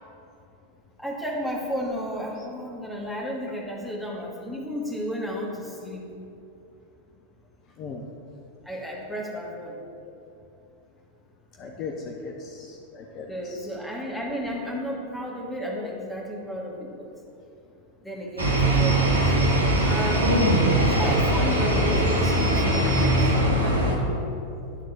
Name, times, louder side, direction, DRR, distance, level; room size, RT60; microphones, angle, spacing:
voice 1, 1.0-6.1 8.7-9.8 13.3-17.1 18.0-19.4 19.8-20.3 20.9-23.2 23.6-24.2, equal, ahead, -4 dB, 1.8 m, -32 dB
voice 2, 11.6-13.7 20.5-20.6, left 4 dB, 35° left, 0 dB, 0.8 m, -38 dB
sound 1, 18.4-24.0, right 1 dB, 75° right, 1.2 m, -21 dB
11.0 x 4.0 x 6.3 m, 2.7 s
figure-of-eight pair, 90°, 0 cm